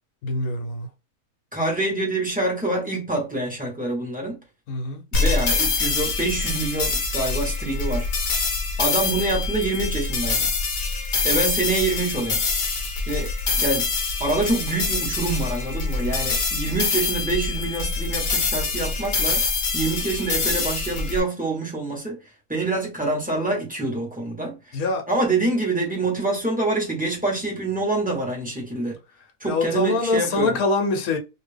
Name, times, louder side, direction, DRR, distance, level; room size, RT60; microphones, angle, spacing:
voice 1, 0.2-0.9 4.7-5.0 24.7-25.0 29.5-31.2, left 3 dB, 75° left, 1.3 m, -24 dB
voice 2, 1.5-4.4 5.1-8.1 8.8-10.5 11.2-12.4 13.1-13.9 14.2-19.5 19.7-22.2 22.5-24.8 25.1-29.0 29.4-30.6, right 2 dB, 5° right, 1.1 m, -26 dB
sound 1, 5.1-21.2, left 4 dB, 50° left, 1.1 m, -25 dB
2.8 x 2.8 x 3.4 m
omnidirectional pair, 1.6 m